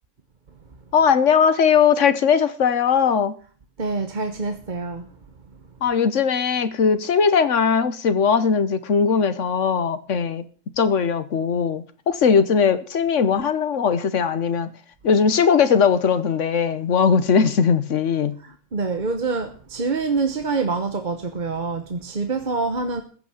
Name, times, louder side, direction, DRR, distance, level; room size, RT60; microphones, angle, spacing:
voice 1, 0.9-3.4 5.8-10.4 10.8-14.7 15.0-18.4, left 6 dB, 60° left, 1.3 m, -19 dB
voice 2, 3.8-5.1 18.4-23.0, right 4 dB, 40° right, 1.1 m, -26 dB
15.0 x 6.0 x 8.5 m
omnidirectional pair, 1.4 m